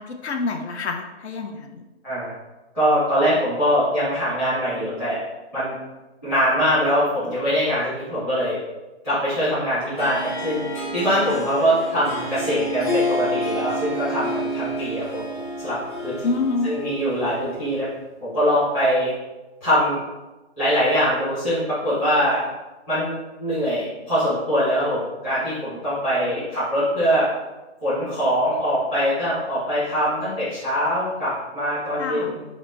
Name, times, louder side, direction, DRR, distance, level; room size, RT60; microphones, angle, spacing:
voice 1, 0.0-1.8 16.2-16.8 32.0-32.3, left 3 dB, 75° left, 4 dB, 0.6 m, -27 dB
voice 2, 2.7-5.2 5.5-5.7 6.2-8.6 9.0-15.2 15.6-15.8 16.0-16.2 16.6-17.9 18.2-19.1 19.6-20.0 20.6-22.4 22.9-23.1 23.4-27.3 27.8-32.4, equal, 5° left, -14 dB, 0.5 m, -22 dB
Harp, 9.9-17.7, equal, 45° left, 0.9 m, -29 dB
3.8 x 2.0 x 3.2 m, 1.1 s
hypercardioid pair, 165°, 33 cm